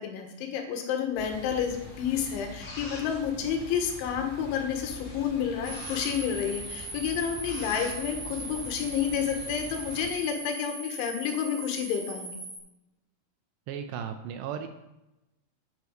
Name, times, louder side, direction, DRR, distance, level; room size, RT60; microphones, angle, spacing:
voice 1, 0.0-12.4, left 8 dB, 80° left, 4 dB, 3.8 m, -30 dB
sound 1, 1.1-10.1, left 2 dB, 25° left, 4.0 m, -43 dB
sound 2, 5.6-12.6, right 2 dB, 50° right, 4.3 m, -40 dB
voice 2, 13.7-14.7, right 8 dB, 80° right, 7 dB, 2.7 m, -35 dB
9.6 x 6.8 x 6.5 m, 0.93 s
omnidirectional pair, 5.4 m